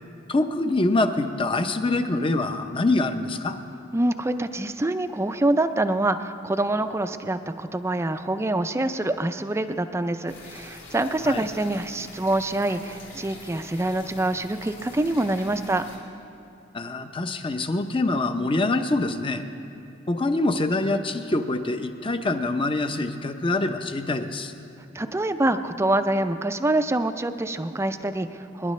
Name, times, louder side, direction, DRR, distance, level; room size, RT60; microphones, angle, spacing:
voice 1, 0.3-3.6 11.2-11.4 16.7-19.4 20.1-24.5, left 2 dB, 25° left, 8 dB, 0.6 m, -25 dB
voice 2, 3.9-15.9 24.9-28.7, right 1 dB, 15° right, 10 dB, 0.4 m, -25 dB
sound 1, 10.3-16.0, left 3 dB, 75° left, 3.4 m, -45 dB
25.0 x 11.0 x 3.2 m, 2.8 s
head